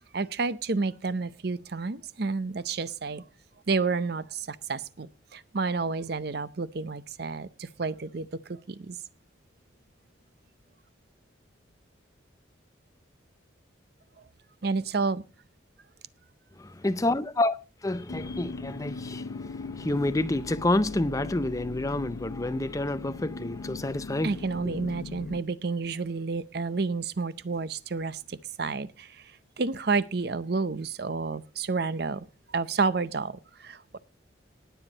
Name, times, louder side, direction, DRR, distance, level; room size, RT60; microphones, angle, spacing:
voice 1, 0.1-3.2 3.7-9.0 14.6-15.2 24.2-29.3 29.6-34.0, right 4 dB, 55° right, 0.6 m, -30 dB
voice 2, 16.6-17.6 17.8-24.3 24.6-24.7, left 2 dB, 15° left, 0.5 m, -28 dB
sound 1, 18.1-25.4, left 3 dB, 85° left, 0.6 m, -39 dB
19.5 x 7.2 x 4.0 m
head